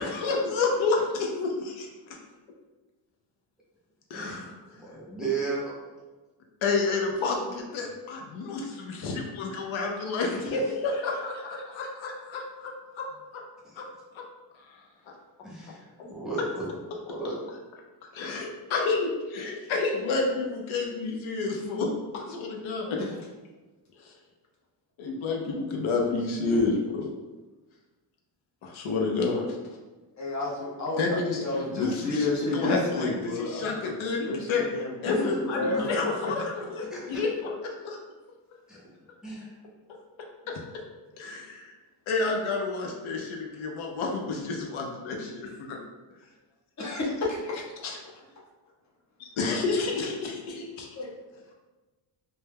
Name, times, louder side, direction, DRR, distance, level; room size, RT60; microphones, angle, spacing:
voice 1, 0.0-1.9 4.1-4.5 6.6-13.1 13.3-13.4 13.8-13.9 14.1-14.2 14.5-14.8 18.1-23.0 24.0-24.1 25.0-27.1 28.6-29.6 31.0-38.0 40.5-40.6 41.2-41.7 42.1-45.8 47.8-48.0 49.2-50.9, left 3 dB, 75° left, 1 dB, 0.6 m, -30 dB
voice 2, 4.1-4.4 4.8-5.7 10.3-10.6 13.6-13.8 15.4-16.7 17.0-17.4 35.1-35.8 36.9-37.0 38.7-38.8 39.2-39.5, right 3 dB, ahead, -6 dB, 0.6 m, -34 dB
voice 3, 25.4-26.0 26.4-26.7 30.2-35.1 35.4-36.1 46.8-47.6 51.0-51.1, left 2 dB, 35° left, -4 dB, 0.7 m, -31 dB
2.1 x 2.1 x 3.2 m, 1.2 s
cardioid pair, 105°, 48 cm